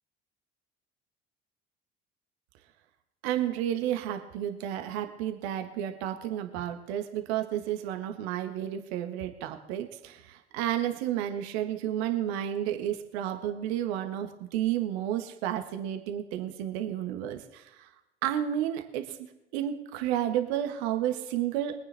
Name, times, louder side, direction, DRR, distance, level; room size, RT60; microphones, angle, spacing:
voice 1, 3.2-17.9 18.2-19.3 19.5-21.8, right 11 dB, 65° right, 7 dB, 1.6 m, -31 dB
23.5 x 9.1 x 3.5 m, 0.97 s
figure-of-eight pair, 60°, 33 cm